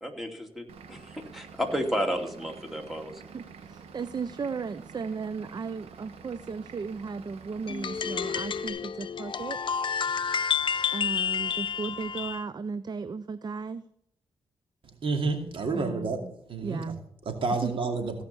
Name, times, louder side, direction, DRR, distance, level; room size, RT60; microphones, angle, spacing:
voice 1, 0.0-3.2, equal, ahead, 3 dB, 2.7 m, -32 dB
Vehicle / Engine, 0.7-8.7, right 5 dB, 85° right, 1.4 m, -48 dB
voice 2, 3.3-9.6 10.9-13.8 15.7-16.1 16.6-17.1 17.6-17.7, right 5 dB, 45° right, 15 dB, 0.6 m, -35 dB
sound 1, 7.7-12.4, left 7 dB, 55° left, 0.6 m, -30 dB
voice 3, 15.0-16.8 17.3-18.2, right 3 dB, 65° right, 4 dB, 2.4 m, -29 dB
16.5 x 5.8 x 6.9 m, 0.71 s
supercardioid pair, 50°, 10 cm